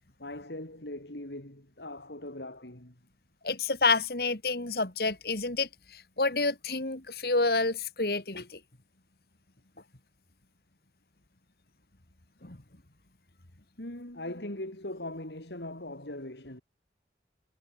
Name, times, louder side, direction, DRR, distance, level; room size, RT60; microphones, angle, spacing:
voice 1, 0.0-3.0 13.8-16.6, left 1 dB, 75° left, 4.2 m, -40 dB
voice 2, 3.4-8.6 12.4-12.6, left 3 dB, 60° left, 2.2 m, -29 dB
head